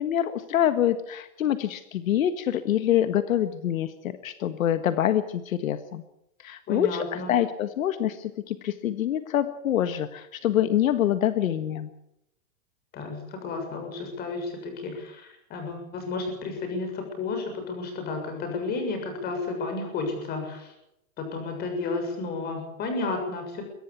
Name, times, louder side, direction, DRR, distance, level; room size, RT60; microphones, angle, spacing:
voice 1, 0.0-6.0 6.4-11.9, left 11 dB, 75° left, 10 dB, 1.7 m, -26 dB
voice 2, 6.7-7.3 12.9-20.7 21.2-23.6, left 3 dB, 20° left, 5 dB, 7.0 m, -32 dB
23.0 x 17.0 x 8.3 m, 0.83 s
supercardioid pair, 160°, 42 cm